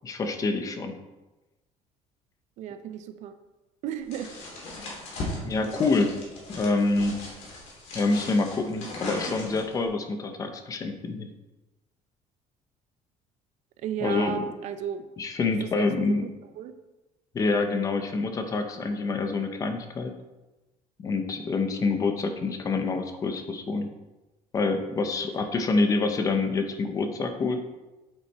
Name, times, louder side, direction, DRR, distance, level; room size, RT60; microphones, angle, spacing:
voice 1, 0.0-0.9 5.4-6.2 6.5-7.2 7.9-11.3 14.0-14.5 15.2-16.3 17.3-20.1 21.0-23.9 24.5-27.6, left 3 dB, 25° left, 6 dB, 0.8 m, -26 dB
voice 2, 2.6-3.4 3.8-4.3 13.8-15.1 15.4-16.7, right 8 dB, 60° right, 9 dB, 0.8 m, -34 dB
sound 1, 4.1-9.8, left 1 dB, 55° left, 3.4 m, -38 dB
8.4 x 8.0 x 4.3 m, 1.1 s
cardioid pair, 175°, 14 cm